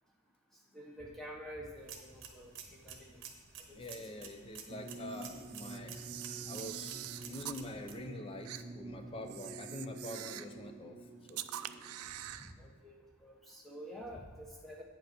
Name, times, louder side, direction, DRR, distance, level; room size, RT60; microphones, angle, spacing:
voice 1, 0.7-3.2 12.4-14.8, equal, ahead, -3 dB, 1.1 m, -48 dB
sound 1, 1.8-7.9, right 7 dB, 55° right, 1.0 m, -51 dB
voice 2, 3.7-5.9 6.5-6.9 7.2-11.0 11.3-11.5, left 1 dB, 25° left, 5 dB, 0.6 m, -45 dB
sound 2, 4.7-12.9, right 2 dB, 30° right, 0.5 m, -49 dB
Camera, 5.1-7.6 8.5-8.6 9.3-10.6 11.3-12.5, right 13 dB, 75° right, 0.4 m, -45 dB
8.8 x 5.5 x 5.9 m, 1.3 s
head